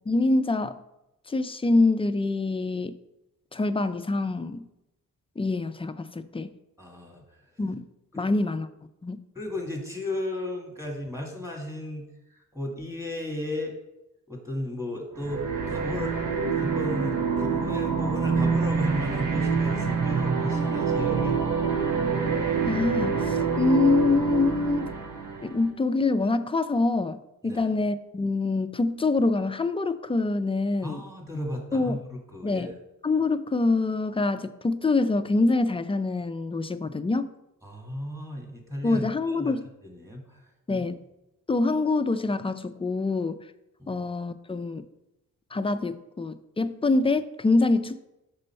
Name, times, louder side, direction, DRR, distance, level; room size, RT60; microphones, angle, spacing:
voice 1, 0.1-0.8 1.3-3.0 3.5-4.6 5.4-6.5 7.6-7.8 8.2-8.7 9.0-9.2 22.7-24.8 25.4-31.0 31.7-32.0 32.4-32.7 33.0-37.3 38.8-39.7 40.7-41.0 41.5-43.4 43.9-44.8 45.5-48.1, left 3 dB, 20° left, 11 dB, 0.3 m, -25 dB
voice 2, 6.8-7.2 8.1-8.3 9.4-12.1 12.5-13.7 14.3-16.1 16.6-21.4 27.4-27.7 30.8-32.7 37.6-39.1 39.4-39.5 39.8-40.4 40.7-40.9 43.8-43.9, left 1 dB, 10° right, 1 dB, 1.8 m, -34 dB
sound 1, 15.2-25.7, right 5 dB, 80° right, 1.3 m, -26 dB
6.6 x 6.1 x 4.4 m, 0.91 s
wide cardioid pair, 110°, 32 cm